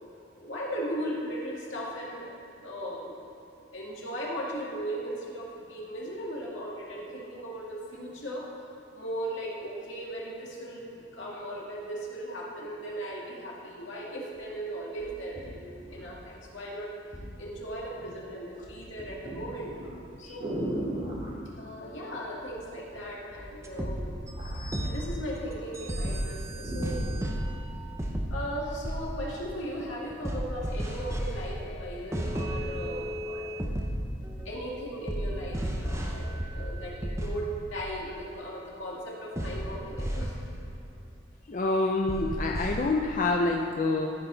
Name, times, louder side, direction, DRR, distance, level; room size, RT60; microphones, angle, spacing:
voice 1, 0.3-2.3 2.6-3.1 3.7-8.5 8.9-16.9 17.4-19.7 20.2-20.6 21.5-24.2 24.8-27.1 28.3-33.5 34.4-40.4, equal, 80° left, -4 dB, 2.0 m, -37 dB
sound 1, 14.4-14.5 15.0-16.5 17.1-17.3 17.7-18.2 18.5-21.3 22.5-23.0 23.3-25.6 25.9-26.0 26.3-27.4 28.1-28.2, right 1 dB, 35° right, 2.0 m, -36 dB
sound 2, 23.6-34.7 35.1-37.8 39.4-40.8 42.1-42.8, equal, 15° right, 0.7 m, -34 dB
voice 2, 41.5-44.1, left 3 dB, 40° left, 1 dB, 0.5 m, -27 dB
13.5 x 5.8 x 3.9 m, 2.7 s
head